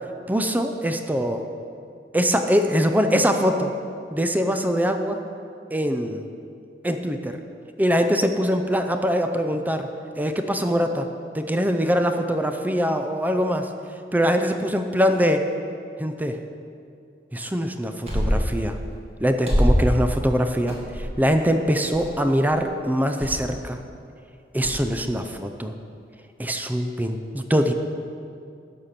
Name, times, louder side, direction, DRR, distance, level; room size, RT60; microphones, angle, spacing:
voice 1, 0.3-1.4 2.1-3.7 4.1-5.2 5.7-6.3 6.8-7.4 7.8-9.9 10.2-11.1 11.3-13.7 14.1-15.5 16.0-16.4 17.3-18.8 19.2-23.8 24.5-25.7 26.4-27.7, equal, 10° right, 6 dB, 0.5 m, -23 dB
sound 1, 18.0-18.5 19.4-19.9 20.7-21.2 21.9-22.1 22.4-22.6 23.2-23.4 24.6-24.8, equal, 35° right, 1.9 m, -22 dB
11.0 x 5.8 x 6.7 m, 2.4 s
head